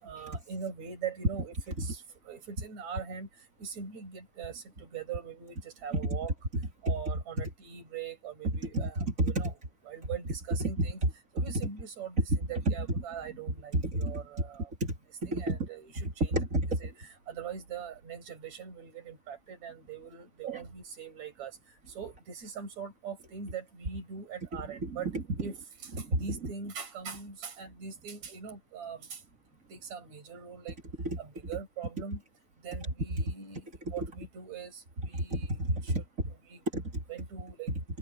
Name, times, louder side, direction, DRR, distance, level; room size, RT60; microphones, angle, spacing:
voice 1, 0.0-3.3 3.6-6.3 6.8-9.5 9.9-11.0 11.3-14.7 15.3-16.3 16.8-21.6 21.9-25.1 25.4-29.2 29.7-30.8 31.2-32.2 32.6-33.6 33.9-35.5 35.8-36.0 36.5-36.6 37.1-37.7, right 7 dB, 60° right, 7.7 m, -42 dB
voice 2, 8.7-9.5 10.6-11.1 11.4-11.5 12.3-12.4 12.7-12.8 13.7-14.2 14.8-15.0 15.2-15.7 16.3-16.8 20.4-20.6 24.7-25.2 26.0-26.5 31.0-31.2 33.3-33.4 33.8-33.9 35.1-36.0 36.7-37.0, right 1 dB, 25° right, 3.1 m, -30 dB
omnidirectional pair, 3.5 m